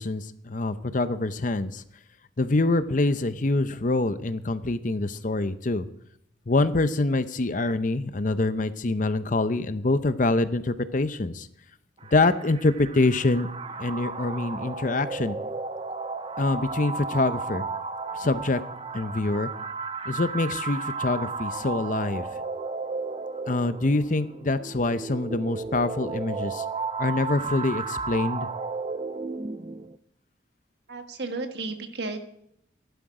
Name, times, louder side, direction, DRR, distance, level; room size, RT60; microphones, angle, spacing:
voice 1, 0.0-1.8 2.4-5.9 6.5-11.5 12.1-13.5 13.8-15.4 16.4-17.7 18.2-18.6 18.9-19.5 20.1-22.3 23.5-26.6 27.0-28.5, left 2 dB, 45° left, 12 dB, 0.7 m, -25 dB
sound 1, 12.0-30.0, right 4 dB, 30° right, 0.6 m, -34 dB
voice 2, 30.9-32.2, right 3 dB, 65° right, 6 dB, 1.5 m, -33 dB
15.5 x 11.5 x 4.9 m, 0.73 s
head